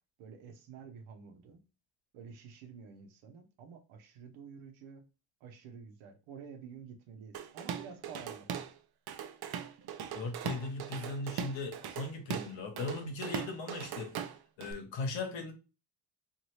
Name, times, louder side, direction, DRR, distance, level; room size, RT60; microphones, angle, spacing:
voice 1, 0.2-1.6 2.1-5.0 5.4-8.5, right 6 dB, 80° right, 0.9 m, -50 dB
Drum kit / Drum, 7.3-8.7 9.1-14.7, right 8 dB, 55° right, 0.6 m, -40 dB
voice 2, 10.1-14.2 14.6-15.5, left 3 dB, 70° left, 1.1 m, -38 dB
2.8 x 2.6 x 3.1 m
supercardioid pair, 60°, 47 cm